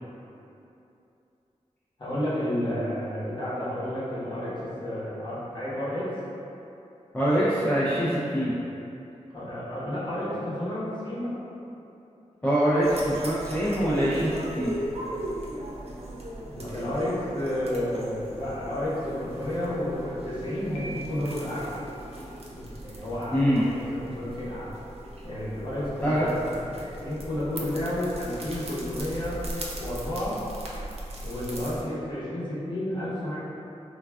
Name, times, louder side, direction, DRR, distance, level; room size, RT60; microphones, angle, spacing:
voice 1, 2.0-4.5 4.8-6.1 9.3-11.3 16.5-21.7 22.5-24.7 25.2-29.4 29.7-30.4 31.2-33.4, left 1 dB, 40° left, -10 dB, 0.9 m, -31 dB
voice 2, 7.1-8.5 12.4-14.7 23.3-23.6 26.0-26.3, equal, 10° left, -10 dB, 0.4 m, -24 dB
sound 1, 12.8-31.8, right 1 dB, 55° right, 0.5 m, -38 dB
Piano, 20.7-21.7, right 2 dB, 75° left, 0.5 m, -43 dB
3.3 x 2.3 x 2.2 m, 2.8 s
wide cardioid pair, 90°, 12 cm